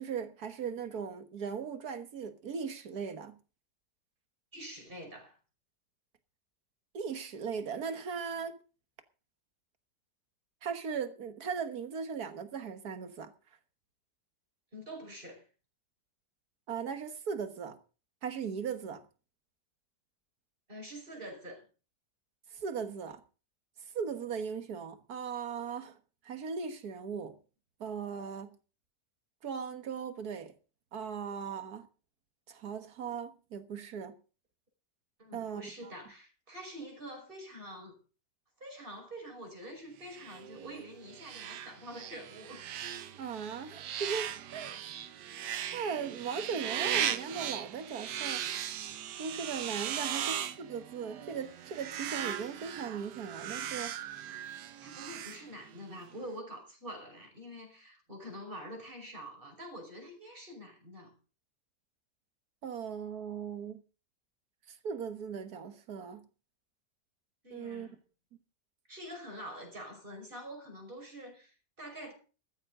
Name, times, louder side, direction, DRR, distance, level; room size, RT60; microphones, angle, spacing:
voice 1, 0.0-3.4 6.9-8.6 10.6-13.3 16.7-17.8 18.2-19.0 22.5-23.2 23.9-26.0 26.2-27.3 27.8-28.5 29.4-30.5 30.9-31.9 32.5-34.2 35.3-35.9 43.1-44.8 45.7-48.4 49.2-54.2 62.6-63.8 64.7-66.3 67.5-67.9, right 6 dB, 65° right, 1.9 m, -38 dB
voice 2, 4.5-5.4 14.7-15.4 20.7-21.6 35.2-37.9 38.6-42.6 43.1-43.2 54.8-61.1 67.4-67.9 68.9-72.1, equal, 30° right, 5.5 m, -46 dB
sound 1, 40.0-56.0, right 10 dB, 80° right, 1.5 m, -38 dB
14.0 x 14.0 x 3.8 m
omnidirectional pair, 1.8 m